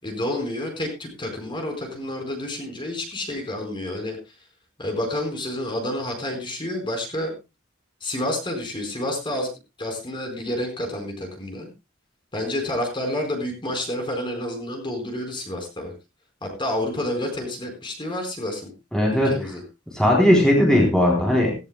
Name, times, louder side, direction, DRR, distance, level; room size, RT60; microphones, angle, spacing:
voice 1, 0.0-4.2 4.8-7.3 8.0-9.5 9.8-11.7 12.3-15.9 16.4-18.7 19.1-19.6, left 1 dB, 25° left, 3 dB, 4.6 m, -29 dB
voice 2, 18.9-19.3 19.9-21.5, left 1 dB, 5° left, -2 dB, 3.7 m, -18 dB
17.0 x 17.0 x 2.3 m, 0.26 s
head